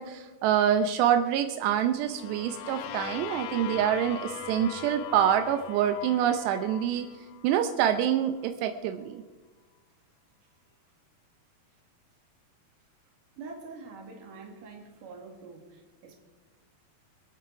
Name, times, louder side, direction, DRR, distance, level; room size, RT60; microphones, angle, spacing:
voice 1, 0.0-7.1 7.4-9.2, right 9 dB, 85° right, 7 dB, 2.9 m, -26 dB
sound 1, 1.9-7.8, left 10 dB, 75° left, 2.2 m, -41 dB
voice 2, 13.4-16.2, right 4 dB, 55° right, 1 dB, 3.6 m, -45 dB
26.5 x 8.9 x 4.7 m, 1.3 s
omnidirectional pair, 4.8 m